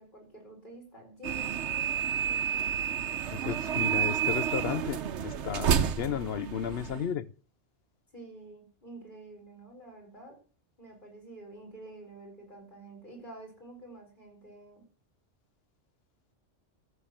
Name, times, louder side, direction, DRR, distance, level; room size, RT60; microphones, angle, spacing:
voice 1, 0.0-2.7 8.1-10.4 10.8-14.8, right 2 dB, 40° left, 5.1 m, -49 dB
sound 1, 1.2-7.1, right 8 dB, 70° right, 1.1 m, -30 dB
voice 2, 3.3-7.3, left 9 dB, 60° left, 0.9 m, -34 dB
13.0 x 7.0 x 7.4 m
omnidirectional pair, 1.3 m